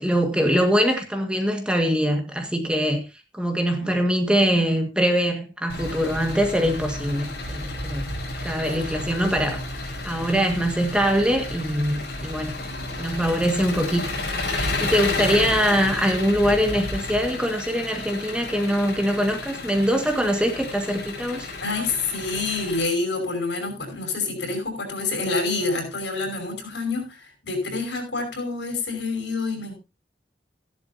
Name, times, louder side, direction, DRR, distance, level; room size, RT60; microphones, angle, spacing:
voice 1, 0.0-3.0 3.3-8.0 8.4-9.6 10.0-12.5 13.0-14.0 14.5-21.5, equal, 5° right, 1.7 m, -23 dB
Engine, 5.7-22.8, left 2 dB, 60° left, 5.2 m, -31 dB
voice 2, 21.6-29.8, left 3 dB, 80° left, 5.6 m, -27 dB
14.5 x 11.5 x 2.8 m
head